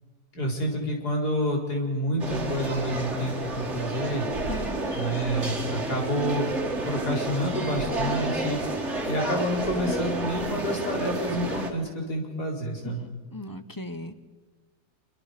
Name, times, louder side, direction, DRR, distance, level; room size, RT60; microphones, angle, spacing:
voice 1, 0.3-4.2 4.9-6.6 6.9-8.6 9.0-13.0, equal, 80° left, 0 dB, 5.0 m, -28 dB
sound 1, 2.2-11.7, right 2 dB, 45° right, 2.7 m, -30 dB
voice 2, 4.5-5.0 12.8-14.1, left 2 dB, 20° left, 11 dB, 0.7 m, -38 dB
27.0 x 24.0 x 5.2 m, 1.4 s
omnidirectional pair, 1.7 m